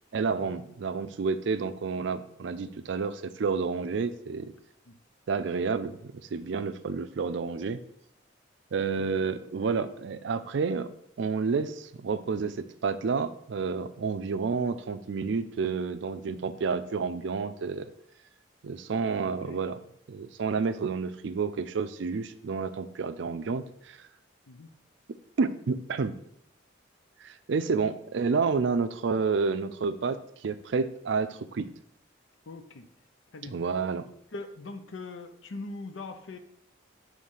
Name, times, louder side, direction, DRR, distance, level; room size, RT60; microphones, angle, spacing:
voice 1, 0.1-4.5 5.3-7.8 8.7-10.9 11.2-17.9 18.6-19.8 20.1-24.0 25.4-26.2 27.2-31.7 33.4-34.1, right 5 dB, 70° right, 12 dB, 0.4 m, -30 dB
voice 2, 19.3-19.6 24.5-24.7 32.5-32.9 33.3-33.6 34.3-36.4, left 3 dB, 80° left, 8 dB, 0.6 m, -41 dB
6.5 x 3.2 x 5.5 m, 0.72 s
head